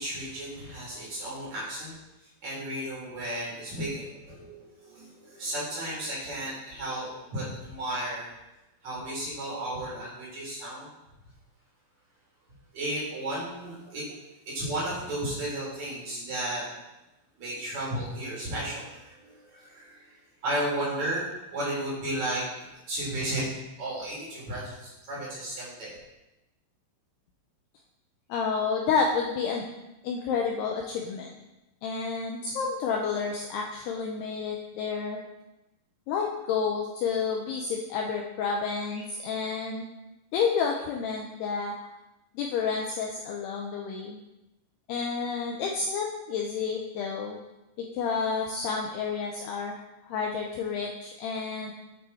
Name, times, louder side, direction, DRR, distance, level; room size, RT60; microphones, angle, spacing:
voice 1, 0.0-1.9 2.2-8.3 8.8-10.9 12.7-14.0 14.4-16.6 17.4-20.1 20.4-22.4 22.9-23.4 23.8-26.0, right 1 dB, 35° right, -7 dB, 4.9 m, -34 dB
voice 2, 28.3-29.6 30.0-31.4 31.8-35.2 36.1-39.9 40.3-41.7 42.4-44.2 44.9-47.4 47.8-51.7, left 5 dB, 80° left, 0 dB, 2.4 m, -30 dB
9.5 x 9.4 x 4.3 m, 0.97 s
omnidirectional pair, 5.7 m